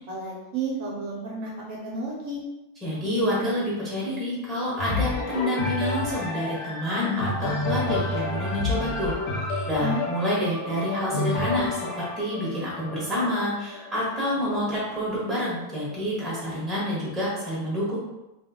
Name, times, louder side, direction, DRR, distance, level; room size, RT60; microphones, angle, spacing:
voice 1, 0.1-2.4 9.8-10.1, right 3 dB, 70° right, -3 dB, 1.0 m, -32 dB
voice 2, 2.8-9.4 9.7-18.0, left 1 dB, ahead, -7 dB, 0.9 m, -28 dB
sound 1, 4.8-14.6 15.2-15.3, left 2 dB, 70° left, 1.1 m, -29 dB
2.9 x 2.4 x 3.5 m, 0.99 s
omnidirectional pair, 1.7 m